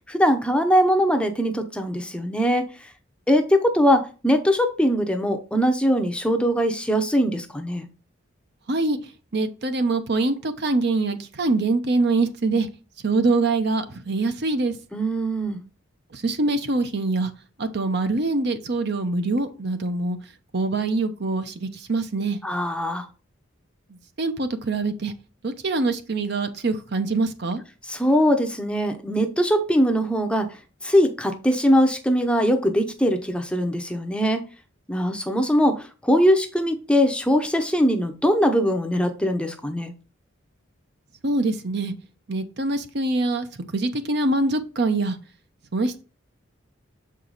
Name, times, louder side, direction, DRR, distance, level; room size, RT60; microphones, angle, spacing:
voice 1, 0.1-2.9 3.3-7.9 14.9-15.6 22.4-23.1 27.8-30.5 30.8-34.4 34.9-39.9, equal, 5° left, 0.7 m, -21 dB
voice 2, 8.7-9.0 9.3-12.7 13.0-14.7 16.1-17.3 17.6-20.2 20.5-22.4 24.2-25.1 25.4-27.6 41.2-41.9 42.3-43.5 43.7-45.2 45.7-46.0, right 3 dB, 55° right, 0.8 m, -24 dB
6.9 x 4.8 x 4.0 m
head